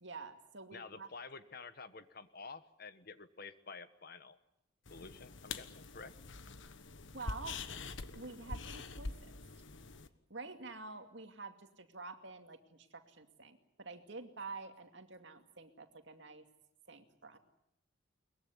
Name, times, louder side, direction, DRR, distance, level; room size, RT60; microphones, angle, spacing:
voice 1, 0.0-1.1 7.1-7.6 8.1-9.3 10.3-16.5 16.9-17.4, right 3 dB, 60° right, 6 dB, 2.4 m, -48 dB
voice 2, 0.7-4.4 4.9-6.1, left 4 dB, 50° left, 12 dB, 1.3 m, -50 dB
sound 1, 4.9-10.1, left 3 dB, 70° left, 1.3 m, -45 dB
22.5 x 21.0 x 9.7 m, 0.81 s
head